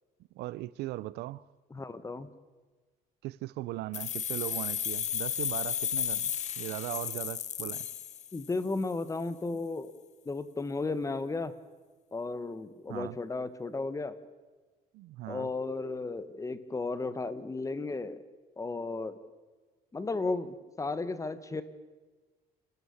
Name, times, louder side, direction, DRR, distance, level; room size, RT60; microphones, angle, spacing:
voice 1, 0.4-1.5 3.2-7.9 12.9-13.2 14.9-15.5, right 17 dB, 80° right, 0.5 m, -38 dB
voice 2, 1.7-2.3 8.3-9.9 10.2-11.5 12.1-14.1 15.3-18.2 18.6-19.2 19.9-21.6, left 3 dB, 20° left, 1.3 m, -34 dB
sound 1, 3.9-8.7, left 9 dB, 45° left, 0.7 m, -33 dB
29.0 x 13.0 x 7.2 m
cardioid pair, 110°, 17 cm